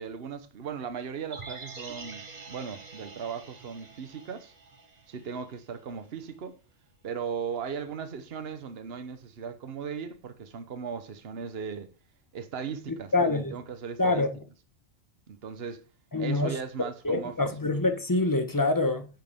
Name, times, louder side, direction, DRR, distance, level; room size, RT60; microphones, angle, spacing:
voice 1, 0.0-4.5 5.1-6.6 7.0-11.9 12.3-14.3 15.3-15.8 16.2-17.3, right 6 dB, 55° right, 1.2 m, -37 dB
sound 1, 1.3-5.5 5.8-5.9, right 4 dB, 35° right, 1.2 m, -45 dB
voice 2, 13.1-13.5 14.0-14.3 16.1-16.6 17.0-19.1, left 2 dB, 20° left, 1.0 m, -25 dB
9.3 x 7.7 x 3.6 m
omnidirectional pair, 1.2 m